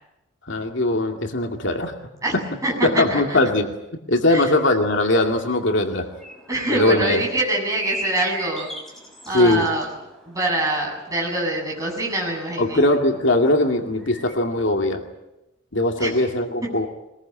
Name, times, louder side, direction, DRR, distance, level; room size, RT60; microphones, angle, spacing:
voice 1, 0.5-1.9 2.8-3.7 4.1-6.1 6.7-7.2 9.3-9.7 12.6-15.0 15.7-16.9, left 2 dB, 65° left, 3 dB, 2.4 m, -20 dB
voice 2, 2.6-3.4 4.3-4.6 6.5-8.7 9.2-9.9 10.3-12.8 16.0-16.1 16.6-16.7, right 2 dB, 15° right, -2 dB, 7.9 m, -25 dB
sound 1, 4.4-14.3, right 1 dB, ahead, 5.2 m, -38 dB
22.5 x 21.5 x 8.9 m, 0.92 s
head